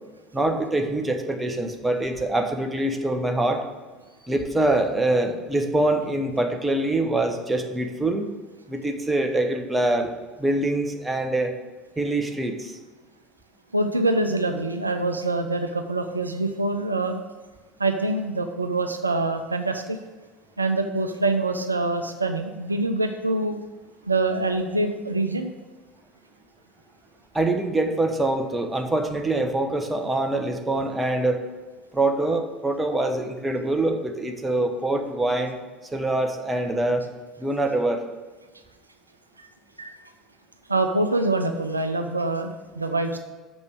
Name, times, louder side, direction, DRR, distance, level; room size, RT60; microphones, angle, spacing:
voice 1, 0.3-3.6 4.2-8.3 8.7-10.1 10.4-11.5 12.0-12.8 27.3-31.4 31.9-35.6 35.9-37.1 37.4-38.0, right 2 dB, 15° right, 4 dB, 1.1 m, -24 dB
voice 2, 13.7-17.2 17.8-20.0 20.6-23.6 24.1-25.5 39.4-39.5 39.8-39.9 40.7-43.2, right 2 dB, 90° right, 6 dB, 0.5 m, -25 dB
6.9 x 5.3 x 6.2 m, 1.3 s
figure-of-eight pair, 70°, 0 cm